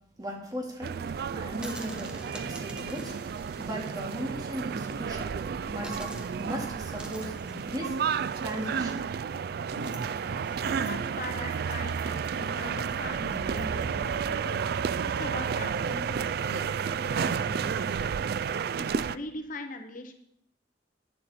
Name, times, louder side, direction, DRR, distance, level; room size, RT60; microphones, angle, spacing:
voice 1, 0.2-5.4 5.7-8.0 8.4-9.1 11.4-11.5, equal, 20° right, 0 dB, 2.5 m, -37 dB
sound 1, 0.8-19.2, right 6 dB, 55° right, 0.3 m, -31 dB
sound 2, 1.5-4.9 5.3-5.4 5.8-14.2, right 1 dB, 5° right, 1.3 m, -50 dB
Fireworks, 8.3-12.0 12.7-12.8 13.0-13.1 13.3-13.4 14.0-14.2, right 2 dB, 75° right, 0.9 m, -46 dB
voice 2, 10.2-14.9 15.2-18.1 18.5-20.1, left 2 dB, 45° left, 6 dB, 0.9 m, -41 dB
11.0 x 10.0 x 4.4 m, 0.75 s
head